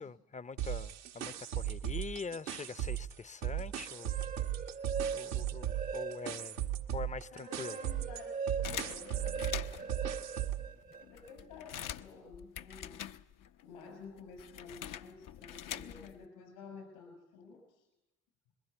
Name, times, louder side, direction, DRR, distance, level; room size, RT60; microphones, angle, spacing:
voice 1, 0.0-4.2 5.1-7.8, left 5 dB, 20° left, 0.7 m, -44 dB
sound 1, 0.6-3.1 3.4-10.7, right 12 dB, 85° right, 1.3 m, -37 dB
sound 2, 3.9-6.6 7.0-11.3, right 5 dB, 20° right, 0.7 m, -41 dB
voice 2, 7.3-9.2 11.0-13.0 13.6-17.9, left 4 dB, 80° left, 6.4 m, -51 dB
sound 3, 8.6-10.0 10.6-10.7 10.9-13.6 13.9-16.2, left 10 dB, 55° left, 0.7 m, -44 dB
21.5 x 15.5 x 8.1 m
hypercardioid pair, 45°, 39 cm